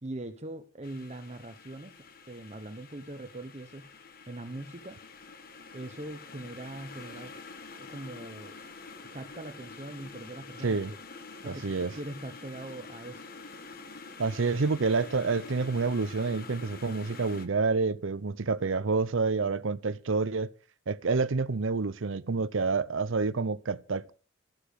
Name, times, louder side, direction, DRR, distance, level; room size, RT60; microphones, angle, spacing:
voice 1, 0.0-3.9 4.3-5.0 5.7-7.3 7.8-8.6 9.1-11.0 11.4-13.3, right 1 dB, 35° right, 1.0 m, -42 dB
sound 1, 0.8-17.5, left 4 dB, 45° left, 1.4 m, -47 dB
voice 2, 11.4-11.9 14.2-20.5 20.9-24.1, right 4 dB, 75° right, 0.7 m, -28 dB
13.5 x 10.0 x 6.7 m
head